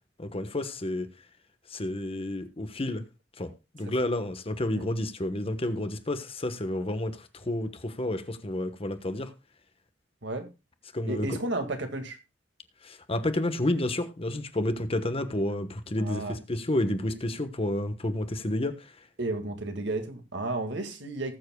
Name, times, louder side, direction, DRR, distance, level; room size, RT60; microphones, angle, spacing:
voice 1, 0.2-1.1 1.7-3.0 3.4-9.3 10.9-11.4 12.8-18.8, left 1 dB, 30° left, 1.1 m, -30 dB
voice 2, 11.1-12.2 16.0-16.4 19.2-21.4, right 2 dB, 65° right, 1.9 m, -32 dB
19.5 x 7.5 x 2.2 m
head